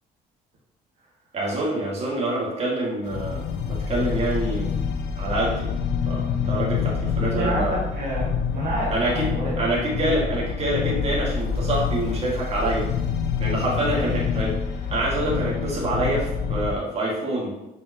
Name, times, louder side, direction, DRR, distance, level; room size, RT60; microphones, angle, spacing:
voice 1, 1.3-4.7 5.2-5.7 6.1-7.8 8.9-9.3 9.6-12.9 13.4-14.5 14.9-17.5, right 1 dB, 40° right, -4 dB, 2.3 m, -26 dB
sound 1, 3.1-16.7, left 6 dB, 75° left, 0.7 m, -27 dB
voice 2, 7.1-9.6 13.9-14.0, right 1 dB, 55° right, -6 dB, 1.6 m, -29 dB
6.0 x 5.3 x 3.1 m, 0.96 s
cardioid pair, 110°, 17 cm